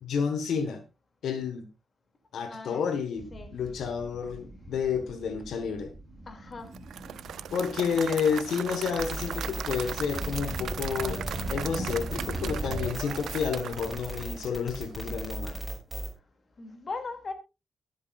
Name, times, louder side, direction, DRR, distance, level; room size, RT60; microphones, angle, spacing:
voice 1, 0.0-0.8 1.2-1.7 2.3-5.9 7.5-11.2 11.5-15.6, left 6 dB, 85° left, 1.5 m, -30 dB
voice 2, 2.5-2.8 3.3-3.5 6.3-6.8 16.6-17.3, left 3 dB, 35° left, 2.7 m, -38 dB
sound 1, 3.2-12.9, right 1 dB, 40° right, 3.3 m, -40 dB
Applause / Crowd, 6.7-14.9, right 9 dB, 85° right, 0.5 m, -38 dB
sound 2, 9.0-16.1, right 1 dB, 5° right, 6.5 m, -36 dB
22.0 x 8.3 x 2.5 m
cardioid pair, 120°, 0 cm